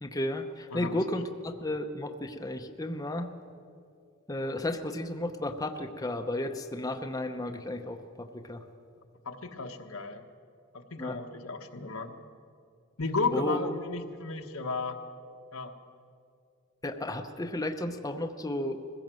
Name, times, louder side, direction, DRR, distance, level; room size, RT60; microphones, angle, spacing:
voice 1, 0.0-3.3 4.3-8.6 11.0-11.2 13.3-13.7 16.8-18.8, left 1 dB, 15° left, 5 dB, 0.8 m, -33 dB
voice 2, 9.2-10.2 10.7-12.1 13.0-15.0 15.5-15.7, left 3 dB, 80° left, 5 dB, 1.4 m, -34 dB
21.5 x 16.0 x 7.6 m, 2.4 s
head